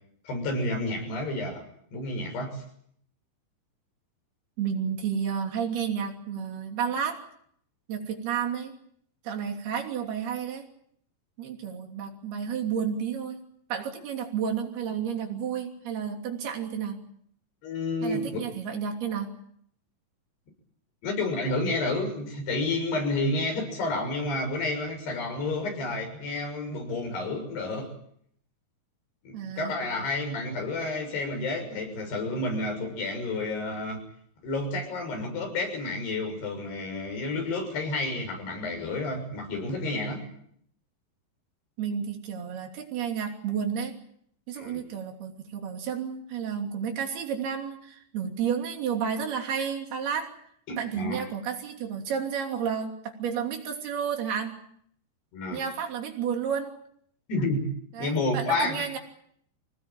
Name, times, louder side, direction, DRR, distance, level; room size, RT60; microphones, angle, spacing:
voice 1, 0.3-1.6 1.9-2.6 17.6-18.4 21.0-27.9 29.2-34.0 34.4-40.2 44.6-44.8 50.7-51.2 55.3-55.6 57.3-57.7 58.0-58.9, left 2 dB, 90° left, 4 dB, 8.6 m, -30 dB
voice 2, 4.6-7.2 7.9-8.8 9.2-10.7 11.4-13.4 13.7-17.0 18.0-19.3 29.3-29.7 41.8-43.9 44.5-50.3 50.8-54.6 55.5-56.7 57.9-59.0, right 7 dB, 75° right, 2 dB, 5.0 m, -31 dB
26.0 x 18.5 x 9.1 m, 0.67 s
omnidirectional pair, 4.6 m